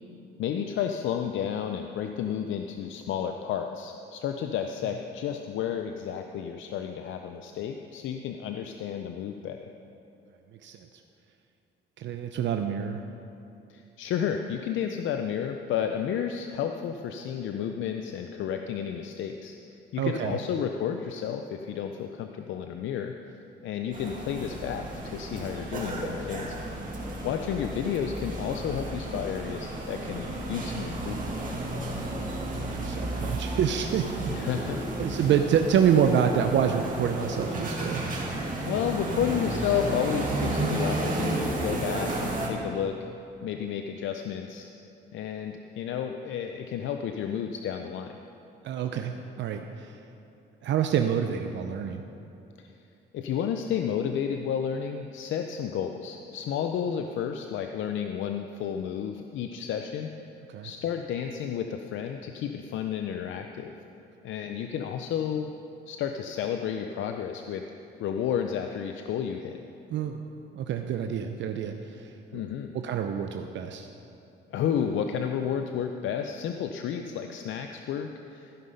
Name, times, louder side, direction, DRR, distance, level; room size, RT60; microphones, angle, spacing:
voice 1, 0.4-9.7 13.7-19.5 19.9-23.1 23.6-26.6 27.2-31.4 34.3-34.8 38.7-43.0 43.4-44.7 45.1-48.2 52.6-52.7 53.1-60.1 60.6-63.7 64.2-65.5 65.9-67.6 68.0-69.6 72.3-72.7 74.5-78.5, left 8 dB, 75° left, 5 dB, 0.5 m, -31 dB
voice 2, 12.0-13.0 20.0-20.4 32.4-34.3 35.0-38.0 48.6-49.9 50.6-52.0 60.5-60.7 69.9-70.2 70.5-72.4 72.7-73.9, right 8 dB, 70° right, 5 dB, 0.6 m, -27 dB
sound 1, 23.9-42.5, right 2 dB, 40° right, 2.1 m, -32 dB
14.5 x 5.6 x 5.4 m, 2.8 s
cardioid pair, 90°, 20 cm